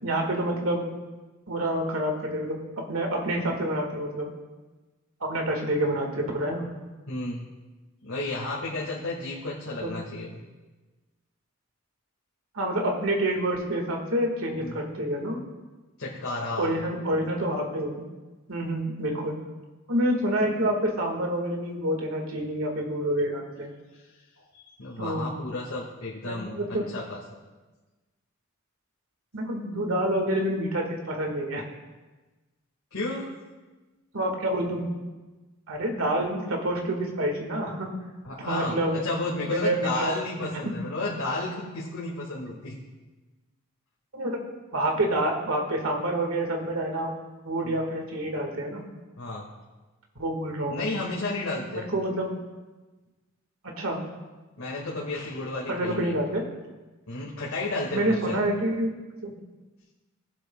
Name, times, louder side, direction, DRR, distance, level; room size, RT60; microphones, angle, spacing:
voice 1, 0.0-0.9 1.5-4.3 5.2-6.6 9.8-9.9 12.5-15.4 16.6-18.0 18.5-19.3 19.9-23.7 25.0-25.3 26.2-26.8 29.3-31.6 34.1-34.9 35.7-37.9 38.4-39.0 39.5-40.6 44.1-44.4 44.7-47.1 47.4-48.8 50.2-50.9 51.7-52.3 53.6-54.0 55.7-56.4 57.9-58.9 59.2-59.3, right 1 dB, 80° right, 2 dB, 1.7 m, -28 dB
voice 2, 7.1-7.5 8.0-10.4 14.6-14.8 16.0-16.7 24.5-27.2 32.9-33.3 38.2-42.8 47.6-47.7 49.2-49.5 50.7-51.9 54.6-56.2 57.1-58.4, left 2 dB, 85° left, -5 dB, 1.8 m, -32 dB
22.5 x 7.9 x 2.3 m, 1.2 s
head